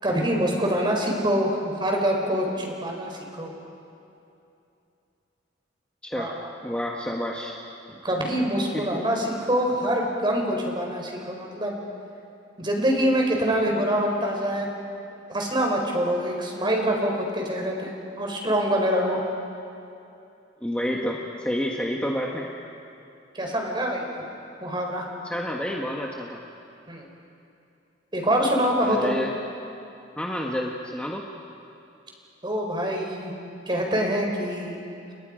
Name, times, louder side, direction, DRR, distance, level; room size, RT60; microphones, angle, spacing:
voice 1, 0.0-3.5 6.2-6.4 8.0-11.8 12.6-14.7 15.3-19.2 23.3-24.1 24.6-25.0 26.9-27.0 28.1-29.1 32.4-33.3 33.7-34.8, equal, 25° right, 1 dB, 4.6 m, -25 dB
voice 2, 6.6-7.6 8.7-8.8 20.6-22.5 25.2-26.4 28.8-29.3 30.2-31.2, equal, 5° left, -1 dB, 1.5 m, -29 dB
30.0 x 29.5 x 5.2 m, 2.7 s
head